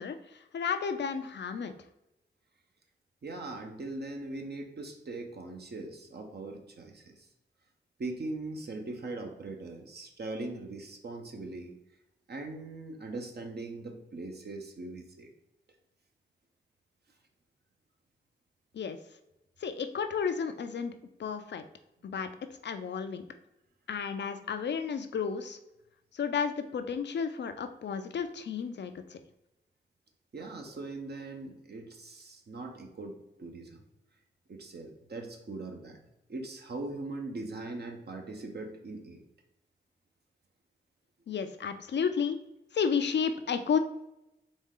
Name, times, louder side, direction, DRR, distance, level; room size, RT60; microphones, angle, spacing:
voice 1, 0.0-1.7 18.7-19.0 19.6-20.9 21.2-21.6 22.0-22.3 22.6-23.3 23.9-25.6 26.1-29.2 41.3-42.4 42.7-43.8, left 6 dB, 65° left, 8 dB, 0.5 m, -32 dB
voice 2, 3.2-7.3 8.0-11.7 12.3-15.3 30.3-33.8 34.5-39.2, right 2 dB, 60° right, 3 dB, 0.9 m, -40 dB
4.2 x 3.2 x 3.7 m, 0.89 s
cardioid pair, 45°, 19 cm